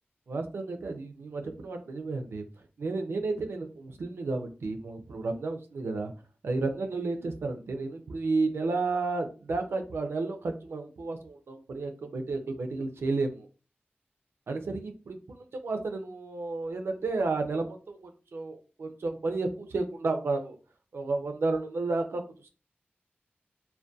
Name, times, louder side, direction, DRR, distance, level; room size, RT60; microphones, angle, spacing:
voice 1, 0.3-2.4 2.8-6.1 6.4-13.5 14.5-20.6 20.9-22.5, right 3 dB, 85° right, 5 dB, 0.4 m, -32 dB
2.6 x 2.1 x 2.3 m, 0.36 s
wide cardioid pair, 60°, 4 cm